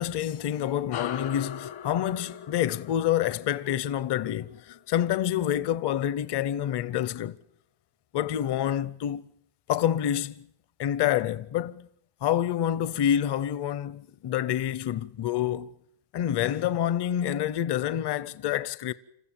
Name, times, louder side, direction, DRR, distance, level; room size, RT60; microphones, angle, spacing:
voice 1, 0.0-7.4 8.1-9.2 9.7-10.5 10.8-11.9 12.2-15.7 16.1-18.9, left 11 dB, 55° left, 0.8 m, -27 dB
sound 1, 0.9-5.7, left 8 dB, 70° left, 1.6 m, -40 dB
28.0 x 14.5 x 9.0 m
cardioid pair, 125°, 50 cm